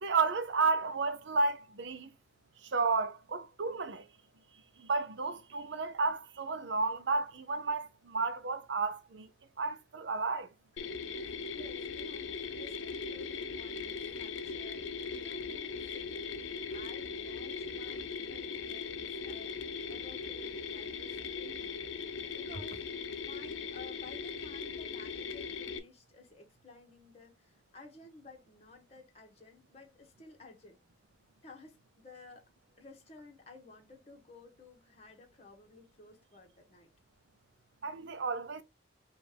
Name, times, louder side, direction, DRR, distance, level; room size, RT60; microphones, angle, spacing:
voice 1, 0.0-2.1 2.6-4.0 4.8-9.3 9.6-10.5 37.8-38.6, right 4 dB, 70° right, 0.6 m, -32 dB
voice 2, 10.7-16.1 16.7-19.6 19.9-22.8 23.2-30.8 31.4-32.5 32.8-36.9, left 3 dB, 35° left, 1.3 m, -55 dB
Mechanisms, 10.8-25.8, left 5 dB, 90° left, 0.6 m, -39 dB
5.2 x 2.5 x 3.4 m
head